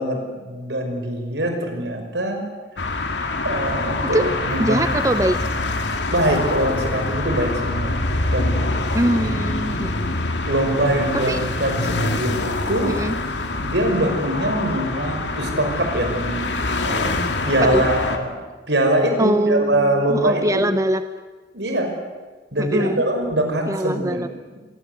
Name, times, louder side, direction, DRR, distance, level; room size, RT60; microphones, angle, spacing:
voice 1, 0.0-2.5 3.4-5.2 6.1-8.9 10.5-12.9 13.6-17.2 17.4-18.4 18.7-20.7 21.5-21.9 22.5-24.4, right 1 dB, 75° right, 4 dB, 5.7 m, -23 dB
sound 1, 2.8-18.2, left 2 dB, 75° left, 2.4 m, -25 dB
voice 2, 4.6-5.4 8.9-10.2 11.1-11.4 12.9-13.2 17.6-17.8 19.2-21.0 22.6-23.0 23.7-24.3, right 1 dB, 20° right, 10 dB, 0.7 m, -22 dB
26.5 x 22.5 x 8.2 m, 1.3 s
head